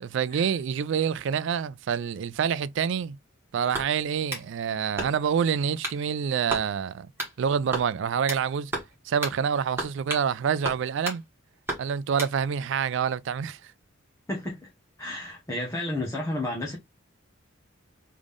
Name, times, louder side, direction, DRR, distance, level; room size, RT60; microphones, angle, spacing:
voice 1, 0.0-3.2 3.5-7.1 7.4-8.7 9.0-11.2 11.8-13.7, right 7 dB, 60° right, 0.3 m, -27 dB
sound 1, 3.7-4.5 5.0-5.4 5.8-6.0 6.5-6.7 7.2-7.4 7.7-8.4 8.7-8.9 9.2-9.4 9.8-10.3 10.6-11.2 11.7-12.3, right 2 dB, 10° right, 1.9 m, -33 dB
voice 2, 14.3-14.7 15.0-16.8, left 1 dB, 15° left, 1.2 m, -32 dB
3.7 x 3.5 x 3.5 m
head